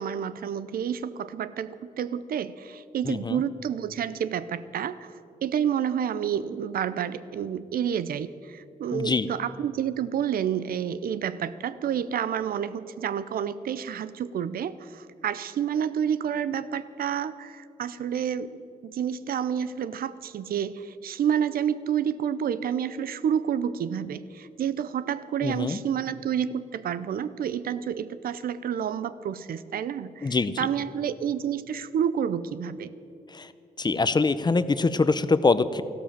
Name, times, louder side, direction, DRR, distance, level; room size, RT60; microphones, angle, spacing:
voice 1, 0.0-32.9, right 8 dB, 80° right, 15 dB, 0.6 m, -29 dB
voice 2, 3.0-3.4 8.9-9.3 25.4-25.8 30.2-30.5 33.3-33.5 33.8-35.8, left 3 dB, 30° left, 14 dB, 0.7 m, -24 dB
14.0 x 12.5 x 7.4 m, 2.6 s
cardioid pair, 85°, 15 cm